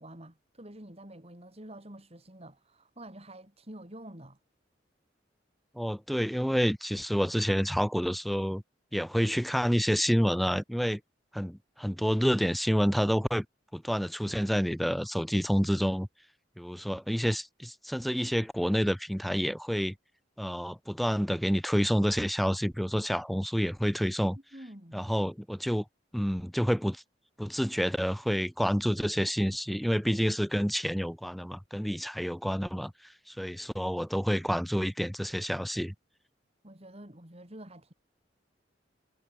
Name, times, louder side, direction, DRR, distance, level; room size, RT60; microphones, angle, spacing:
voice 1, 0.0-4.4 24.5-25.1 36.6-37.9, right 1 dB, 35° right, 5.2 m, -48 dB
voice 2, 5.8-8.6 8.9-11.0 11.3-13.4 13.7-16.1 16.6-19.9 20.4-24.4 24.9-25.8 26.1-27.0 27.4-32.9 33.3-35.9, equal, ahead, 0.6 m, -28 dB
head